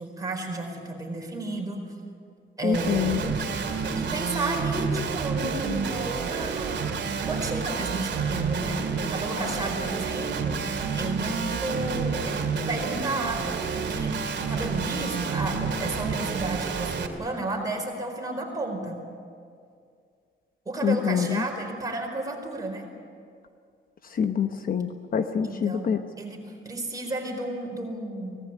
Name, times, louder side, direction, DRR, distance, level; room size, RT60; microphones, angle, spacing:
voice 1, 0.0-1.8 2.6-3.1 4.0-10.6 11.0-19.0 20.6-22.9 25.4-28.4, right 2 dB, 20° right, 1 dB, 4.6 m, -32 dB
voice 2, 2.6-3.2 20.8-21.4 24.1-26.0, left 7 dB, 45° left, 7 dB, 0.9 m, -26 dB
Guitar, 2.7-17.1, right 5 dB, 60° right, 2.5 m, -29 dB
24.5 x 18.5 x 9.9 m, 2.3 s
wide cardioid pair, 175°, 20 cm